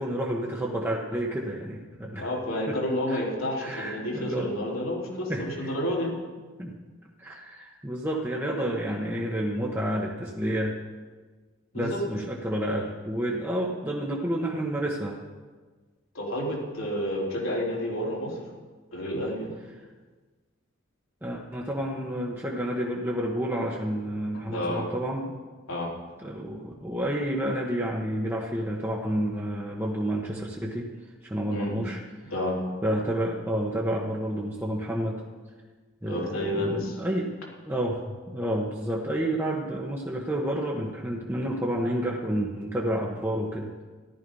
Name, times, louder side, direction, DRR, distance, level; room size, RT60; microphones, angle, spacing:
voice 1, 0.0-2.3 2.7-2.8 3.1-3.2 3.6-4.5 5.3-5.7 6.6-6.7 7.2-10.8 11.7-15.2 21.2-25.4 26.2-30.9 31.2-32.0 32.8-35.2 36.0-37.3 37.7-43.7, right 1 dB, 10° right, -3 dB, 1.2 m, -30 dB
voice 2, 2.2-6.2 11.7-12.0 16.1-18.3 18.9-19.5 24.5-24.8 25.7-25.9 31.5-31.8 32.3-32.5 36.1-37.0, left 1 dB, 80° left, -3 dB, 3.7 m, -30 dB
14.0 x 12.0 x 5.5 m, 1.4 s
head